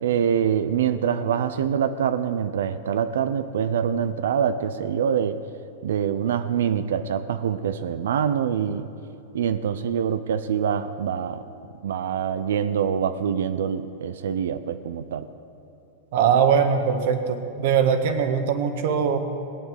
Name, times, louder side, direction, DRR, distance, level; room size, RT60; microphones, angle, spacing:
voice 1, 0.0-5.4 5.8-8.9 9.3-11.4 11.8-15.3, right 8 dB, 90° right, 11 dB, 0.6 m, -25 dB
voice 2, 16.1-19.2, right 7 dB, 65° right, 7 dB, 1.5 m, -21 dB
18.0 x 9.0 x 8.0 m, 2.9 s
supercardioid pair, 140°, 0 cm